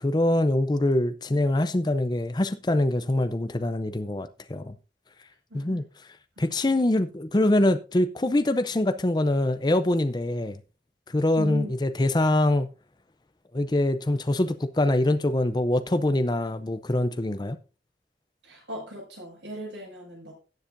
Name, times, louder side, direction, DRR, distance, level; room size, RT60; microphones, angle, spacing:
voice 1, 0.0-4.8 5.5-5.8 6.4-10.6 11.1-12.7 13.5-17.6, left 1 dB, 20° left, 0.5 m, -24 dB
voice 2, 5.5-5.8 6.4-6.5 11.4-11.7 18.4-20.3, equal, 80° right, 6.0 m, -38 dB
17.0 x 7.2 x 2.6 m
head